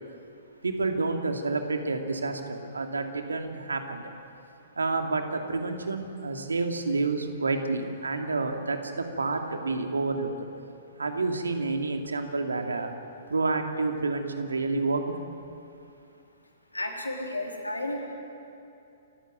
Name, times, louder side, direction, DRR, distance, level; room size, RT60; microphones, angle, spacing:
voice 1, 0.6-4.1 4.7-10.5 11.0-12.9 13.3-15.2, right 3 dB, 75° right, 4 dB, 2.4 m, -29 dB
voice 2, 16.7-18.0, left 1 dB, 90° left, 1 dB, 3.9 m, -32 dB
28.0 x 15.0 x 9.3 m, 2.7 s
figure-of-eight pair, 115°, 0 cm